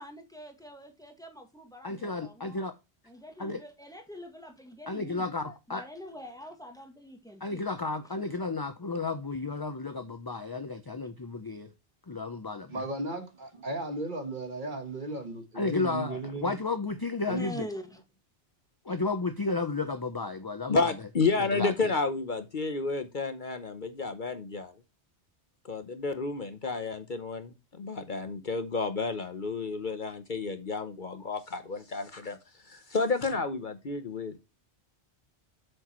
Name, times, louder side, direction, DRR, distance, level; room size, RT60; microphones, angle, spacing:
voice 1, 0.0-2.6 3.1-7.6 17.3-18.0, equal, 5° left, 1.7 m, -44 dB
voice 2, 1.8-2.8 3.4-3.6 4.9-5.8 7.4-11.7 12.1-12.8 15.5-17.7 18.8-20.9 21.3-21.9, left 3 dB, 25° left, 0.5 m, -33 dB
voice 3, 12.7-16.5 17.3-17.5, right 2 dB, 45° right, 1.5 m, -35 dB
voice 4, 20.7-24.7 25.6-32.4 32.6-34.4, left 3 dB, 50° left, 1.0 m, -31 dB
8.3 x 6.6 x 3.0 m
omnidirectional pair, 1.1 m